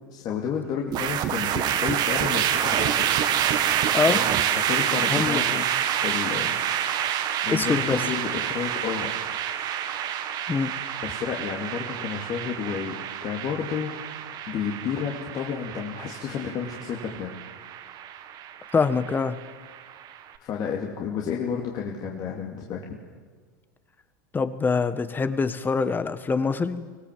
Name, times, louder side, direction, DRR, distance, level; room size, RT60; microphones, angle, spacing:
voice 1, 0.1-3.1 4.1-4.3 4.6-5.6 6.0-6.5 7.4-9.1 11.0-13.9 14.5-17.3 20.4-23.0, left 7 dB, 45° left, -1 dB, 2.8 m, -31 dB
sound 1, 0.9-20.2, right 10 dB, 45° right, 1.7 m, -27 dB
voice 2, 5.1-5.6 7.5-8.0 10.5-10.7 18.7-19.4 24.3-26.8, left 5 dB, 20° left, 12 dB, 1.5 m, -24 dB
25.0 x 18.0 x 7.7 m, 1.5 s
hypercardioid pair, 90°, 10 cm